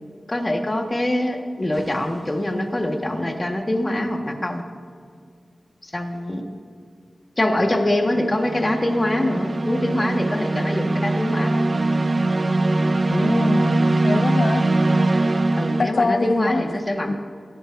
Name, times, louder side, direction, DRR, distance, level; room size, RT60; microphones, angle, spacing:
voice 1, 0.3-4.6 5.9-6.4 7.4-11.7 15.6-17.2, left 1 dB, 25° left, 2 dB, 1.6 m, -24 dB
sound 1, 1.7-2.1 8.0-15.8, right 2 dB, 40° right, 0.6 m, -22 dB
voice 2, 13.1-14.6 15.8-16.7 17.1-17.2, left 3 dB, 60° left, 6 dB, 0.5 m, -24 dB
23.5 x 11.5 x 2.7 m, 2.1 s
wide cardioid pair, 105°, 0 cm